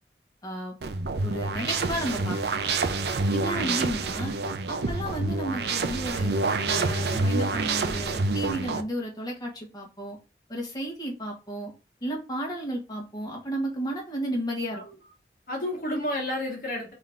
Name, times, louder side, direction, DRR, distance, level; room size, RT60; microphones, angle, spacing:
voice 1, 0.4-0.7 1.2-2.4 3.3-4.3 4.7-6.3 6.7-10.2 10.5-11.7 12.0-14.8, right 1 dB, 20° left, 1.2 m, -33 dB
sound 1, 0.8-8.8, right 3 dB, 70° right, 0.5 m, -27 dB
voice 2, 3.5-3.8 14.7-15.0 15.5-16.9, left 1 dB, 50° left, 1.4 m, -31 dB
3.7 x 2.7 x 3.4 m
head